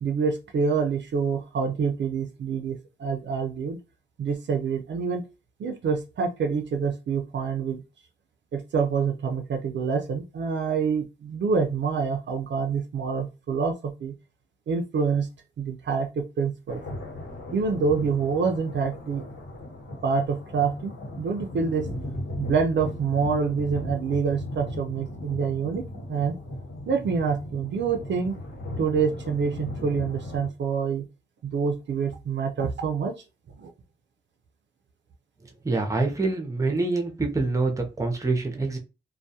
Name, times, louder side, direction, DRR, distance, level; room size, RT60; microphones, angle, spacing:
voice 1, 0.0-3.8 4.2-5.2 5.6-7.8 8.5-14.1 14.7-15.3 15.6-16.8 17.5-19.2 20.0-21.9 22.4-26.3 26.9-28.4 28.8-31.1 31.4-33.1 33.6-33.7, right 5 dB, 65° right, 5 dB, 0.5 m, -26 dB
sound 1, 16.7-30.5, left 1 dB, 75° left, 1.2 m, -37 dB
voice 2, 35.6-38.8, right 3 dB, 15° right, 4 dB, 0.6 m, -25 dB
2.2 x 2.2 x 2.7 m, 0.28 s
wide cardioid pair, 100°, 20 cm